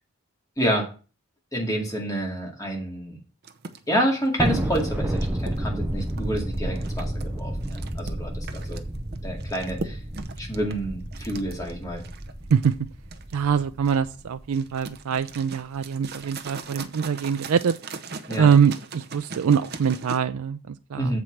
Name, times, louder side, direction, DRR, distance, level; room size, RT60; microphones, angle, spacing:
voice 1, 0.6-0.9 1.5-3.2 3.9-8.8 9.2-10.0 10.4-12.0 18.3-18.5 21.0-21.2, equal, 15° left, 0 dB, 2.2 m, -28 dB
sound 1, 3.4-20.2, right 4 dB, 45° right, 0.8 m, -40 dB
Thunder, 4.4-15.0, right 1 dB, 10° right, 0.6 m, -31 dB
voice 2, 13.3-17.8 18.4-21.2, right 7 dB, 85° right, 9 dB, 0.4 m, -23 dB
7.7 x 4.8 x 7.1 m, 0.36 s
head